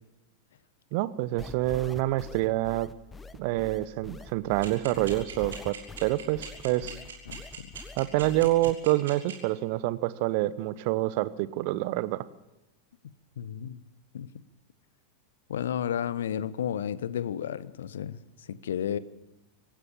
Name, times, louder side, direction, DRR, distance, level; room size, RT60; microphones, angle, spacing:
voice 1, 0.9-2.9 3.4-7.0 8.0-12.2, right 17 dB, 45° right, 16 dB, 1.0 m, -27 dB
sound 1, 1.4-8.7, left 4 dB, 15° left, 1.0 m, -44 dB
sound 2, 4.6-9.3, right 8 dB, 65° right, 6.1 m, -40 dB
voice 2, 7.3-7.7 13.4-13.8 14.1-14.3 15.5-19.0, left 9 dB, 60° left, 17 dB, 1.0 m, -32 dB
25.5 x 15.5 x 7.2 m, 1.0 s
figure-of-eight pair, 90°, 0 cm